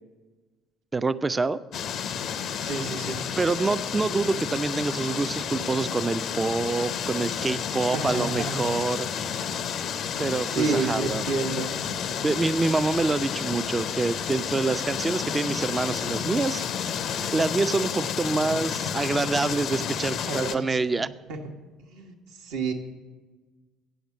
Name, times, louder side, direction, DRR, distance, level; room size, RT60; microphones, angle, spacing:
voice 1, 0.9-1.6 3.4-9.1 10.2-11.3 12.2-16.6 17.1-21.1, right 3 dB, 20° right, 14 dB, 0.3 m, -26 dB
sound 1, 1.7-20.5, left 8 dB, 55° left, 0.4 m, -31 dB
voice 2, 2.6-3.2 7.9-8.6 9.4-9.6 10.5-11.7 20.2-20.7 21.3-21.4 21.9-22.1 22.4-22.7, right 4 dB, 70° right, 3 dB, 1.0 m, -29 dB
8.4 x 7.9 x 6.3 m, 1.3 s
figure-of-eight pair, 55°, 0 cm